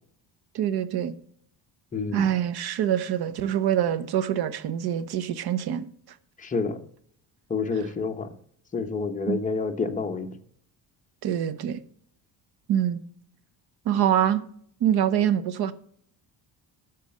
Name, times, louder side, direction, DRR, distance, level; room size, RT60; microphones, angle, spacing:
voice 1, 0.5-1.2 2.1-6.2 9.3-9.4 11.2-11.8 12.7-13.0 13.8-14.5 14.8-15.7, right 10 dB, 65° right, 0.9 m, -25 dB
voice 2, 1.9-2.3 6.4-6.8 7.5-8.3 8.7-10.4, left 4 dB, 20° left, 0.9 m, -28 dB
13.0 x 4.3 x 7.6 m
cardioid pair, 175°, 41 cm